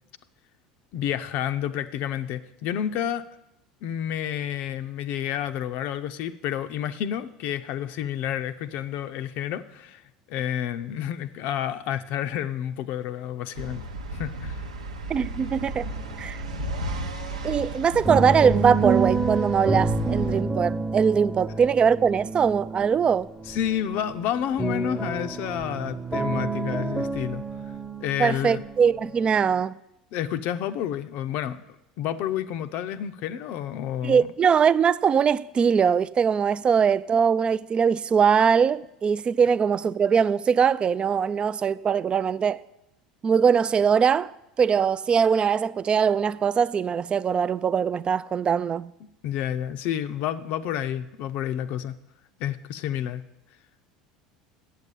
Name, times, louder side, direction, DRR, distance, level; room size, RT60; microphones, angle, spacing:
voice 1, 0.9-3.3 3.8-10.0 10.3-13.9 14.1-14.6 23.5-27.4 28.0-28.6 30.1-34.3 49.2-52.0 52.4-53.2, left 10 dB, 55° left, 0.5 m, -30 dB
sound 1, 13.5-20.4, right 1 dB, 80° right, 0.9 m, -34 dB
voice 2, 15.1-15.9 16.2-16.4 17.4-23.3 28.2-29.7 34.0-42.6 43.2-48.9, right 7 dB, 30° right, 0.3 m, -22 dB
sound 2, 15.8-16.6 16.8-29.6, right 3 dB, 10° right, 0.9 m, -29 dB
8.2 x 7.5 x 8.3 m
figure-of-eight pair, 75°, 3 cm